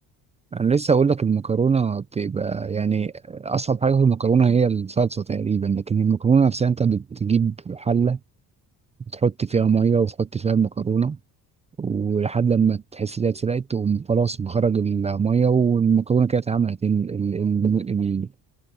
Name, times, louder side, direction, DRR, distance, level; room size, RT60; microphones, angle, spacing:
voice 1, 0.5-8.2 9.1-11.2 11.8-18.3, right 6 dB, 20° right, 0.4 m, -21 dB
cardioid pair, 145°, 37 cm